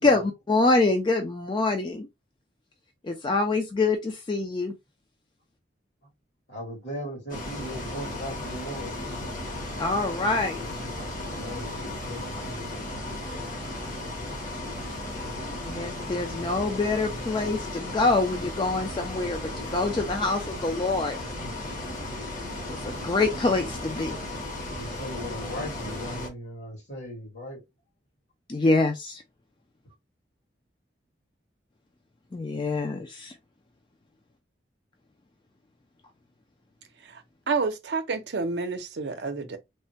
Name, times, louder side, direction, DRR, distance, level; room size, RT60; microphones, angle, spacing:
voice 1, 0.0-2.1 3.0-4.7 9.8-10.6 15.6-21.2 22.7-24.2 28.5-29.2 32.3-33.3, left 3 dB, 25° left, 0.4 m, -25 dB
voice 2, 6.5-9.3 10.9-12.9 24.7-27.6, equal, 75° left, 1.9 m, -38 dB
Bus, 7.3-26.3, left 1 dB, 50° left, 0.9 m, -35 dB
voice 3, 37.5-39.6, right 4 dB, 65° right, 0.6 m, -29 dB
3.2 x 2.1 x 2.7 m
head